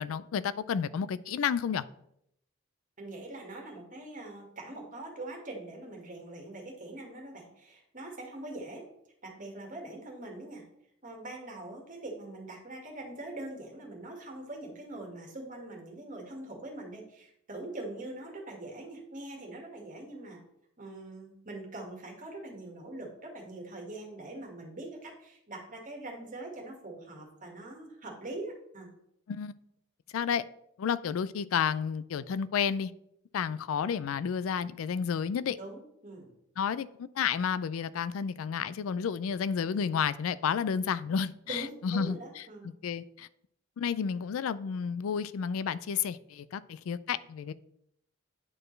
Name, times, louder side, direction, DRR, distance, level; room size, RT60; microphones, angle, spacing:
voice 1, 0.0-1.8 29.3-29.5 30.1-30.4 30.8-32.9 33.3-35.6 36.6-42.4 42.8-43.3 43.8-47.5, left 7 dB, 90° left, 0.3 m, -31 dB
voice 2, 3.0-8.8 9.2-10.6 11.0-20.4 20.8-28.9 35.6-36.3 41.5-42.7, right 2 dB, 40° right, 1.7 m, -43 dB
9.8 x 4.5 x 3.2 m
head